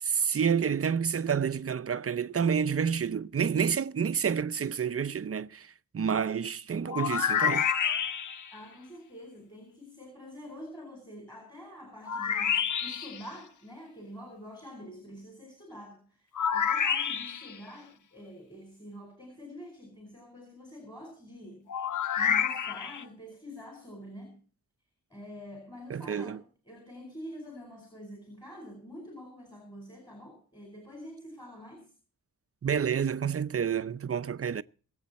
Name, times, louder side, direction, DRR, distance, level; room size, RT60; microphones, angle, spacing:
voice 1, 0.0-7.7 25.9-26.4 32.6-34.6, right 7 dB, 40° right, 0.6 m, -29 dB
sound 1, 6.9-8.5 12.1-13.2 16.3-17.6 21.7-23.0, left 8 dB, 60° left, 0.7 m, -28 dB
voice 2, 8.5-21.7 22.2-24.4 25.1-31.9, equal, 10° left, 4.5 m, -46 dB
23.5 x 8.0 x 4.2 m
wide cardioid pair, 100°, 35 cm